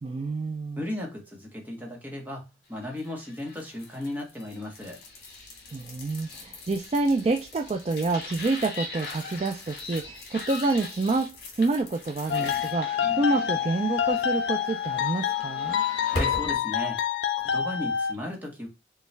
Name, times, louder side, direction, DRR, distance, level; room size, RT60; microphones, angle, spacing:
voice 1, 0.0-0.8 5.7-15.8, right 3 dB, 35° right, 4 dB, 0.3 m, -28 dB
voice 2, 0.8-5.0 16.0-17.0 17.4-18.7, left 1 dB, 10° right, 0 dB, 1.0 m, -36 dB
sound 1, 2.9-16.6, left 2 dB, 60° left, 1.6 m, -40 dB
sound 2, 12.3-18.1, left 8 dB, 80° left, 0.4 m, -27 dB
5.1 x 2.3 x 3.3 m, 0.26 s
head